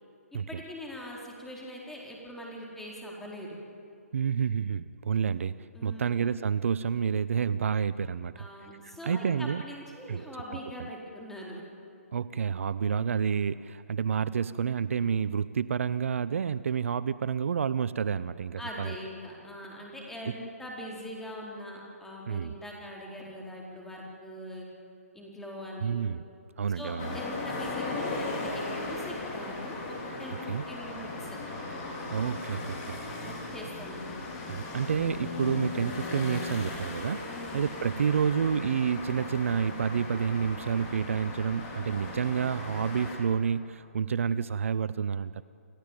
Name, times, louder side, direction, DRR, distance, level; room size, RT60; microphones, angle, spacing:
voice 1, 0.5-3.5 5.7-6.4 8.4-11.6 18.6-24.7 25.1-26.0 26.8-31.4 33.1-34.2 37.3-37.7, left 1 dB, 5° left, -3 dB, 4.3 m, -42 dB
voice 2, 4.1-8.5 8.8-9.6 10.1-10.2 10.5-10.9 12.1-18.9 20.3-20.4 22.3-22.5 25.8-26.2 26.6-27.2 30.5-30.6 32.1-33.0 34.5-45.4, right 7 dB, 60° right, 17 dB, 0.6 m, -29 dB
sound 1, 27.0-43.2, left 3 dB, 30° left, 5.0 m, -37 dB
28.5 x 15.0 x 9.1 m, 2.6 s
figure-of-eight pair, 140°, 8 cm